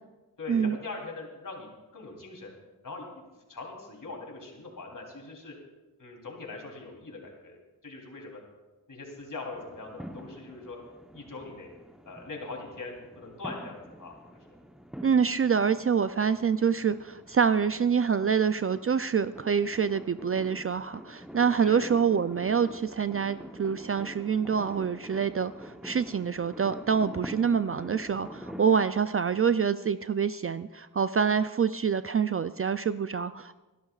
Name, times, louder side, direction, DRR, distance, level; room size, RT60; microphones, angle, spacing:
voice 1, 0.4-2.5 2.8-3.1 3.5-5.6 6.0-7.6 7.8-8.4 8.9-10.8 11.1-11.7 12.1-14.1 14.5-14.6 21.6-21.9, left 3 dB, 50° left, 0 dB, 3.4 m, -41 dB
sound 1, 9.5-28.8, equal, ahead, 0.9 m, -46 dB
voice 2, 15.0-33.5, right 6 dB, 35° right, 13 dB, 0.4 m, -26 dB
28.0 x 12.0 x 2.4 m, 1.1 s
cardioid pair, 70°, 39 cm